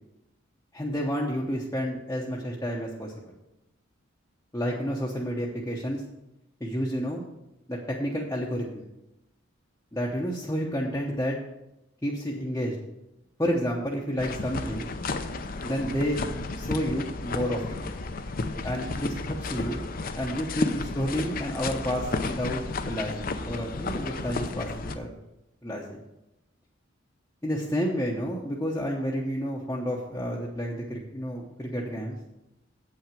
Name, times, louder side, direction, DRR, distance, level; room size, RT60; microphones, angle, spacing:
voice 1, 0.7-3.3 4.5-6.0 6.6-7.2 7.7-8.8 9.9-11.4 12.0-12.8 13.4-14.9 15.6-16.2 16.6-17.8 18.6-19.8 20.2-25.1 25.6-26.0 27.4-32.2, equal, 15° left, -3 dB, 0.9 m, -30 dB
sound 1, 14.2-25.0, left 3 dB, 45° left, 0.6 m, -33 dB
8.1 x 5.8 x 7.5 m, 0.93 s
head